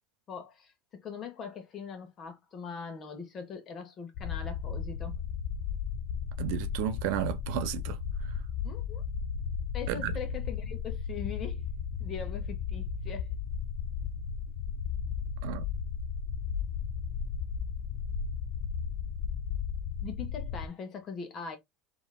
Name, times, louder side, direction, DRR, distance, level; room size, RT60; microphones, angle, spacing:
voice 1, 0.3-5.1 8.6-9.0 9.7-11.6 12.0-13.3 20.0-21.6, left 6 dB, 30° left, 1.2 m, -41 dB
sound 1, 4.1-20.7, left 6 dB, 55° left, 0.6 m, -35 dB
voice 2, 6.4-8.0 9.9-10.1 15.4-15.6, right 13 dB, 60° right, 0.6 m, -33 dB
4.5 x 2.9 x 3.6 m
supercardioid pair, 155°, 0 cm